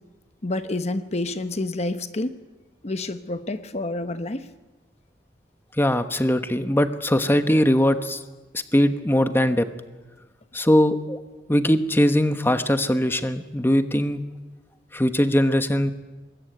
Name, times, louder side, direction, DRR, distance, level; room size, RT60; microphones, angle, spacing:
voice 1, 0.4-2.4 2.8-4.5, left 2 dB, 40° left, 10 dB, 1.0 m, -28 dB
voice 2, 5.8-8.2 8.7-9.7 10.5-11.2 11.5-14.2 14.9-15.9, equal, 15° left, 9 dB, 1.1 m, -20 dB
25.0 x 21.0 x 9.4 m, 1.2 s
head